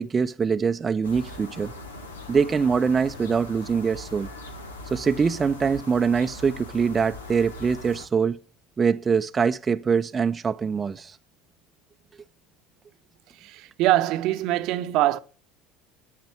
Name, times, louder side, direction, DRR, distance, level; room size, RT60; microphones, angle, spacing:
voice 1, 0.0-1.7 2.3-4.3 4.9-8.4 8.8-11.2, right 6 dB, 25° right, 0.6 m, -23 dB
sound 1, 1.0-8.1, left 2 dB, 85° left, 1.6 m, -40 dB
voice 2, 13.4-15.2, right 15 dB, 55° right, 0.8 m, -23 dB
10.5 x 8.3 x 8.2 m
hypercardioid pair, 70°, 0 cm